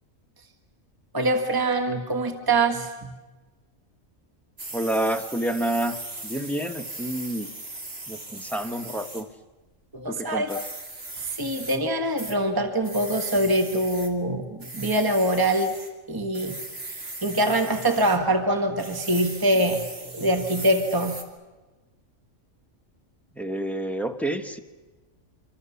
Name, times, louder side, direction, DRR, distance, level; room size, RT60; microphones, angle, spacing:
voice 1, 1.1-3.1 9.9-10.5 11.2-15.7 16.1-16.6 16.9-19.9 20.1-21.2, right 1 dB, 15° right, 5 dB, 1.6 m, -24 dB
sound 1, 4.6-9.2 10.5-11.8 12.2-12.3 12.8-14.1 14.6-15.9 16.3-18.2 18.8-21.2, right 2 dB, 50° right, 2.7 m, -38 dB
voice 2, 4.7-6.0 6.2-7.5 8.1-9.3 10.1-10.6 23.4-24.6, right 1 dB, ahead, 7 dB, 1.2 m, -28 dB
26.0 x 25.5 x 7.1 m, 1.2 s
omnidirectional pair, 1.4 m